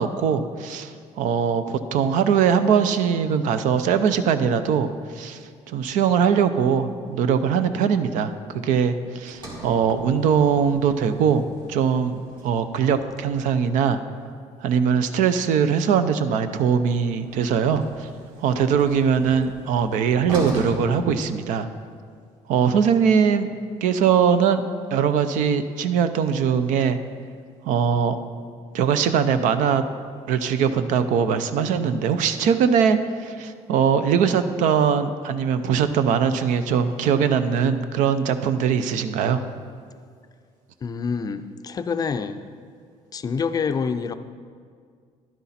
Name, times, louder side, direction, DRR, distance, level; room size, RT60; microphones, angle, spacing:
voice 1, 0.0-4.9 5.1-5.4 5.7-11.4 11.7-14.0 14.6-18.1 18.4-21.7 22.5-23.5 23.8-24.6 24.9-27.0 27.6-28.2 28.7-29.8 30.3-39.4, right 7 dB, 85° right, 11 dB, 0.6 m, -21 dB
Sliding door, 9.3-13.5 17.0-22.0, right 1 dB, 40° right, 2.5 m, -38 dB
voice 2, 40.8-42.4 43.1-44.1, left 5 dB, 30° left, 10 dB, 0.4 m, -26 dB
11.0 x 9.9 x 4.2 m, 2.1 s
cardioid pair, 135°, 13 cm